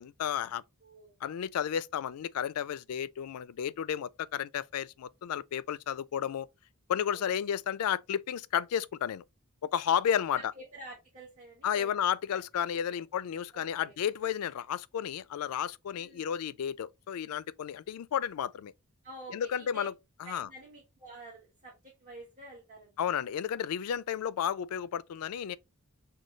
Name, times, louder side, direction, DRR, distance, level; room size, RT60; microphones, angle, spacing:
voice 1, 0.0-0.6 1.2-6.5 6.9-9.2 9.6-10.4 11.6-18.7 19.3-19.9 20.2-20.5 23.0-25.6, left 9 dB, 80° left, 0.3 m, -32 dB
voice 2, 0.8-1.1 7.1-7.3 10.3-11.9 12.3-12.4 12.9-13.0 13.5-13.9 15.9-16.3 19.0-19.9 20.2-22.9, right 1 dB, 35° right, 1.4 m, -48 dB
6.4 x 2.3 x 3.1 m
head